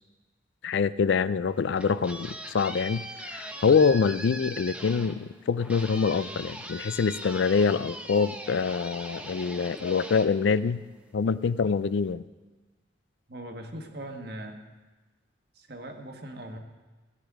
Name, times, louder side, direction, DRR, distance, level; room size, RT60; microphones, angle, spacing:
voice 1, 0.6-3.0 3.3-10.8 11.1-12.2, left 5 dB, 80° left, 16 dB, 0.4 m, -25 dB
sound 1, 1.5-11.2, right 1 dB, 5° right, 0.7 m, -41 dB
voice 2, 13.3-14.6 15.5-16.6, right 1 dB, 55° right, 3 dB, 1.3 m, -40 dB
16.5 x 11.5 x 3.6 m, 1.2 s
head